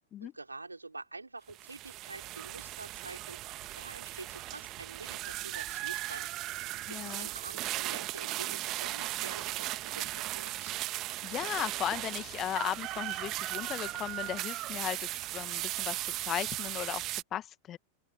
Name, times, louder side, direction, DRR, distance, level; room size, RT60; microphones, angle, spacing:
voice 1, 0.0-3.4 3.8-6.3 6.9-10.8, right 3 dB, 80° right, 5.4 m, -47 dB
sound 1, 1.5-17.2, right 17 dB, 35° right, 1.6 m, -37 dB
voice 2, 6.9-7.3 11.2-17.8, left 11 dB, 30° left, 1.8 m, -36 dB
open air
figure-of-eight pair, 90°, 0 cm